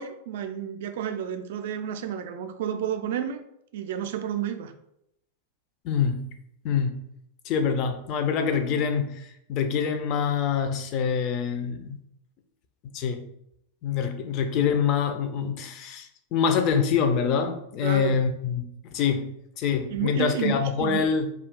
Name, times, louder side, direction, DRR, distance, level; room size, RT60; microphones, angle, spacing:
voice 1, 0.0-3.4 3.7-4.7 17.8-18.2 19.9-21.1, right 9 dB, 55° right, 7 dB, 0.3 m, -31 dB
voice 2, 5.8-6.3 6.6-7.0 7.5-12.0 12.8-13.2 13.8-19.3 19.6-21.3, left 6 dB, 40° left, 7 dB, 0.4 m, -25 dB
2.3 x 2.3 x 3.5 m, 0.77 s
figure-of-eight pair, 90°, 0 cm